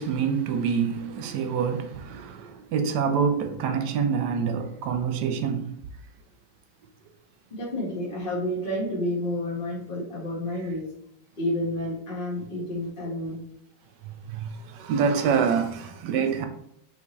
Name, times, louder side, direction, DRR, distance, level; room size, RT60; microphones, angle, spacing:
voice 1, 0.0-5.7 14.0-16.5, right 6 dB, 75° right, 1.0 m, -26 dB
voice 2, 7.5-10.9 11.4-13.4, left 1 dB, 35° left, 0.8 m, -30 dB
5.7 x 2.8 x 3.0 m
omnidirectional pair, 2.2 m